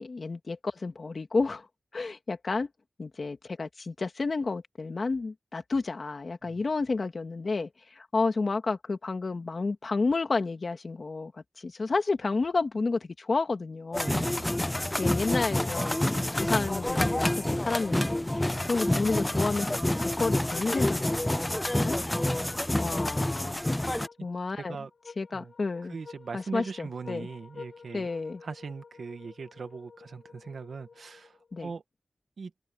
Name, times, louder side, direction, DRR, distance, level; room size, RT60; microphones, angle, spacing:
voice 1, 0.0-1.7 1.9-2.7 3.0-11.3 11.6-14.1 15.0-19.8 20.2-21.4 21.8-22.0 22.8-23.6 24.2-24.8 25.2-26.0 26.3-27.3 27.9-28.4 31.5-31.7, left 3 dB, 55° left, 1.9 m, -31 dB
sound 1, 13.9-24.1, left 1 dB, 15° left, 0.4 m, -28 dB
voice 2, 14.0-14.4 22.4-22.5 24.6-24.9 25.3-25.5 25.9-28.1 28.4-31.8 32.4-32.5, right 5 dB, 85° right, 1.4 m, -40 dB
sound 2, 24.0-31.6, left 5 dB, 70° left, 7.4 m, -51 dB
wide cardioid pair, 120°, 0 cm